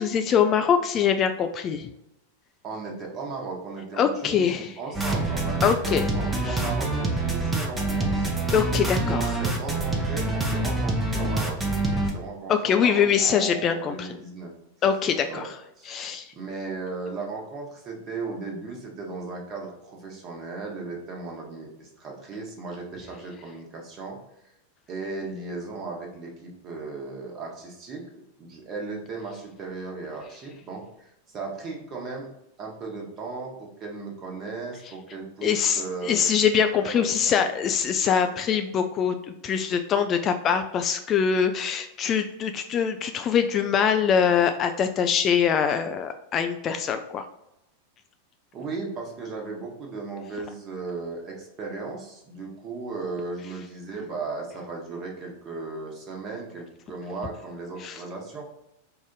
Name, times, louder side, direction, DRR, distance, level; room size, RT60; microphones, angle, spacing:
voice 1, 0.0-1.9 4.0-4.8 5.6-6.1 6.4-6.6 8.5-9.4 12.5-14.2 14.8-15.5 15.9-16.3 35.4-39.2 39.4-47.2 57.8-58.0, left 7 dB, 30° left, 7 dB, 0.3 m, -23 dB
voice 2, 2.6-8.3 9.0-11.6 12.0-14.5 15.3-15.5 15.8-15.9 16.3-24.2 24.9-28.0 28.4-32.3 32.6-36.3 36.8-37.5 48.5-58.4, right 3 dB, 30° right, 0 dB, 1.2 m, -36 dB
sound 1, 4.9-12.1, right 2 dB, 10° right, 0.8 m, -26 dB
4.7 x 2.5 x 3.8 m, 0.85 s
figure-of-eight pair, 90°, 0 cm